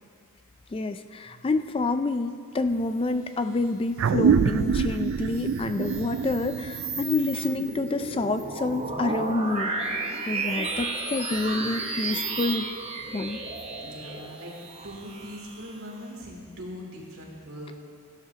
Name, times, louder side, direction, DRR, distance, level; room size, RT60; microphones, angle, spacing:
voice 1, 0.7-9.9 10.3-12.7 13.1-13.4, left 3 dB, 25° left, 9 dB, 0.3 m, -28 dB
sound 1, 4.0-8.9, right 6 dB, 60° right, 0.3 m, -26 dB
sound 2, 5.1-16.0, right 3 dB, 30° right, 1.0 m, -33 dB
voice 2, 13.8-14.6 14.8-17.7, equal, 80° right, -3 dB, 2.7 m, -41 dB
16.5 x 11.5 x 2.9 m, 2.1 s
head